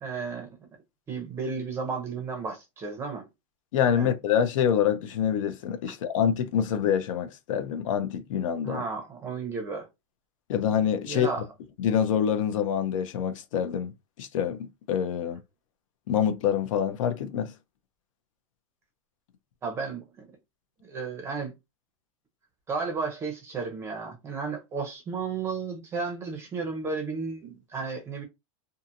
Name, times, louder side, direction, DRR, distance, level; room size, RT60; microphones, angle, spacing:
voice 1, 0.0-0.5 1.1-3.2 3.9-4.1 8.6-9.9 11.0-11.4 19.6-20.3 20.8-21.5 22.7-28.2, right 4 dB, 15° right, 0.6 m, -33 dB
voice 2, 3.7-8.8 10.5-11.3 11.8-13.9 14.2-15.4 16.1-17.5, left 8 dB, 60° left, 0.6 m, -26 dB
2.7 x 2.5 x 2.6 m
supercardioid pair, 160°, 18 cm